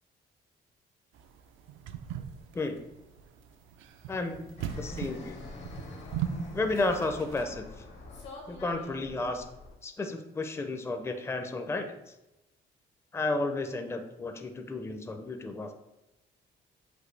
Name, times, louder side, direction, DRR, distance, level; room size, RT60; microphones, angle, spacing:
sound 1, 1.2-7.4, right 9 dB, 85° right, 0.4 m, -38 dB
voice 1, 4.1-5.4 6.5-7.8 8.5-9.5 9.8-11.9 13.1-15.7, left 2 dB, 15° left, 6 dB, 0.4 m, -32 dB
Fixed-wing aircraft airplane, 4.6-9.7, left 3 dB, 70° left, 1.2 m, -45 dB
6.0 x 2.6 x 3.2 m, 0.93 s
cardioid pair, 90°, 20 cm